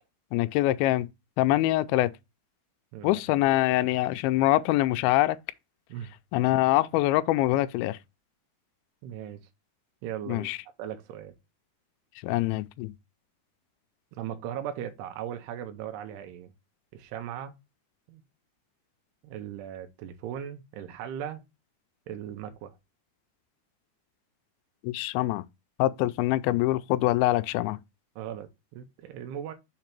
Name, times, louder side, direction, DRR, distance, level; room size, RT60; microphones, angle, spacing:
voice 1, 0.3-1.1 1.4-2.1 3.0-5.4 6.3-8.0 10.3-10.6 12.2-12.9 24.8-25.4 25.8-27.8, left 16 dB, 85° left, 2.2 m, -24 dB
voice 2, 9.0-9.4 10.0-10.5 10.8-11.3 14.2-16.5 16.9-17.6 18.1-18.2 19.2-21.4 22.1-22.7 28.2-29.5, right 10 dB, 80° right, 2.9 m, -38 dB
6.7 x 2.9 x 5.8 m
omnidirectional pair, 4.8 m